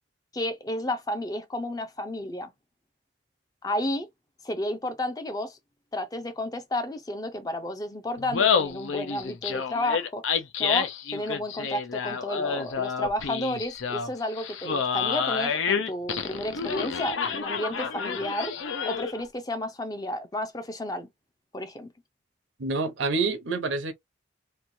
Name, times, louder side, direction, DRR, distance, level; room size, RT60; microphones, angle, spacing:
voice 1, 0.3-2.5 3.6-4.1 4.4-5.6 5.9-18.5 18.9-21.1 21.5-21.9, left 1 dB, 20° left, 0.4 m, -32 dB
Laughter, 8.2-19.2, left 6 dB, 85° left, 0.6 m, -29 dB
voice 2, 22.6-23.9, right 3 dB, 85° right, 0.7 m, -27 dB
3.0 x 2.2 x 2.6 m
head